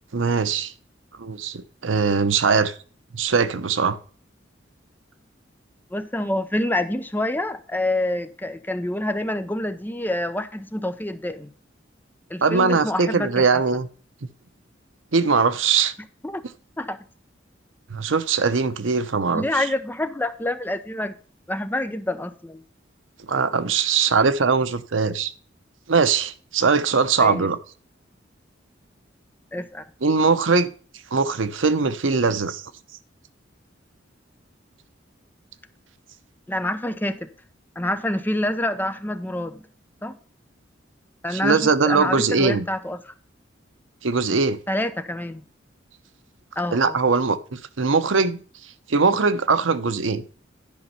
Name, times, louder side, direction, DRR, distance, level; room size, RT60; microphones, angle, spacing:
voice 1, 0.1-0.7 1.2-2.7 3.1-4.0 12.4-13.9 15.1-15.9 17.9-19.7 23.3-25.3 25.9-27.6 30.0-30.7 31.1-32.6 41.3-42.7 44.0-44.6 46.7-48.4 48.9-50.2, right 4 dB, 85° right, 0.8 m, -21 dB
voice 2, 5.9-11.5 12.3-13.6 16.2-16.4 16.8-17.0 19.3-21.1 21.5-22.6 27.2-27.5 29.5-29.8 36.5-37.3 37.8-39.6 40.0-40.1 41.2-43.1 44.7-45.4 46.6-47.0, left 1 dB, 10° left, 0.7 m, -27 dB
10.5 x 5.3 x 5.6 m
head